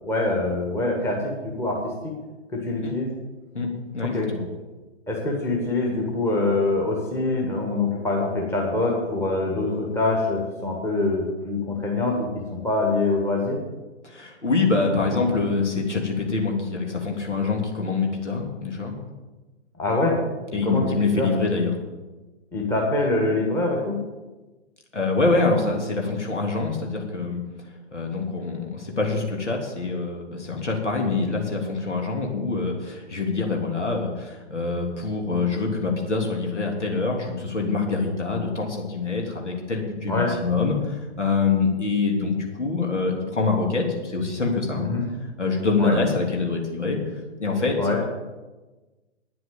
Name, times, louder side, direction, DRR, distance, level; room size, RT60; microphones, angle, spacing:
voice 1, 0.0-1.9 2.5-3.1 4.0-4.3 5.1-13.6 19.8-20.2 20.6-21.3 22.5-24.0 40.1-40.3 44.8-45.1 45.8-46.0 47.8-48.0, left 2 dB, 5° left, -1 dB, 1.5 m, -24 dB
voice 2, 3.9-4.4 14.0-18.9 20.5-21.7 24.9-27.4 27.9-44.9 45.4-47.0 47.4-48.0, left 4 dB, 70° left, 1 dB, 3.2 m, -25 dB
9.6 x 7.8 x 9.2 m, 1.2 s
figure-of-eight pair, 125°, 36 cm